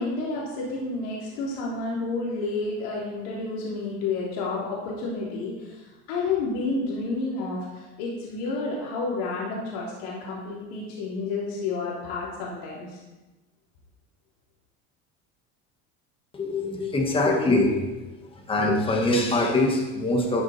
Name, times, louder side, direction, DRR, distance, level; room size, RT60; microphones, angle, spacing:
voice 1, 0.0-13.0, left 3 dB, 90° left, -4 dB, 3.1 m, -30 dB
voice 2, 16.3-18.0 18.3-20.4, left 2 dB, 15° left, 1 dB, 1.7 m, -23 dB
12.5 x 6.5 x 4.3 m, 1.1 s
cardioid pair, 135°, 30 cm